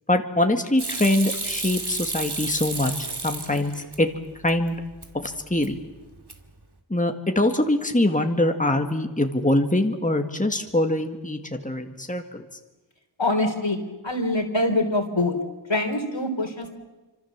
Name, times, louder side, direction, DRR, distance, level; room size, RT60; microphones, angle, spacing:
voice 1, 0.1-3.7 4.0-4.1 4.4-4.8 5.2-5.8 6.9-12.4, left 1 dB, 15° left, 5 dB, 1.9 m, -23 dB
Hands / Sink (filling or washing), 0.8-4.0 4.4-5.1 5.4-5.9 6.2-6.6, right 3 dB, 60° right, 2.4 m, -32 dB
voice 2, 13.2-13.8 14.0-15.4 15.7-16.7, left 2 dB, 75° left, 5 dB, 3.7 m, -24 dB
27.5 x 26.0 x 7.4 m, 1.2 s
wide cardioid pair, 40°, 46 cm